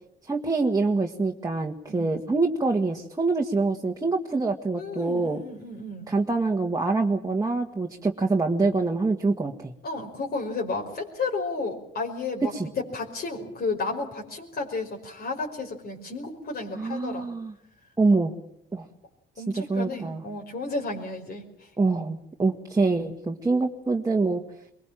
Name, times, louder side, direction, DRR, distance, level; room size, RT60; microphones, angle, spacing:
voice 1, 0.3-5.4 6.1-9.7 16.8-17.5 18.0-18.3 18.7-18.8 19.5-20.2 21.8-24.4, right 3 dB, 15° right, 0 dB, 1.9 m, -25 dB
voice 2, 4.8-6.1 9.8-17.3 19.4-21.7, left 3 dB, 50° left, 0 dB, 5.3 m, -32 dB
23.5 x 22.0 x 7.6 m, 0.75 s
cardioid pair, 90°, 20 cm